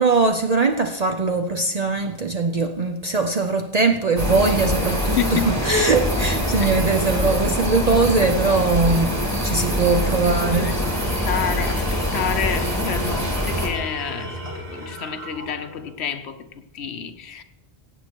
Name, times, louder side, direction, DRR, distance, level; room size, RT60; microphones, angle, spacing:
voice 1, 0.0-9.2 9.4-10.8, right 3 dB, 45° right, 0.7 m, -21 dB
sound 1, 4.2-13.7, left 1 dB, 15° right, 2.5 m, -24 dB
voice 2, 5.0-5.6 6.6-7.4 9.9-10.0 10.4-10.8 11.3-17.4, left 7 dB, 85° left, 1.0 m, -29 dB
Tools, 10.6-16.0, equal, 85° right, 2.5 m, -34 dB
16.0 x 8.5 x 4.5 m
omnidirectional pair, 1.1 m